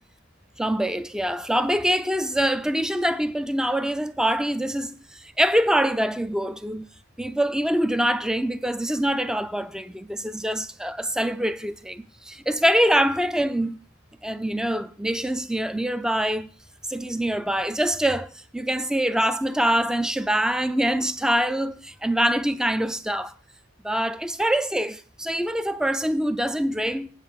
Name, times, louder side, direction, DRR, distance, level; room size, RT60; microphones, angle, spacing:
voice 1, 0.6-6.9 7.2-13.8 14.2-16.5 16.9-23.3 23.8-27.1, right 1 dB, 5° right, 0.4 m, -24 dB
8.1 x 4.9 x 7.5 m
head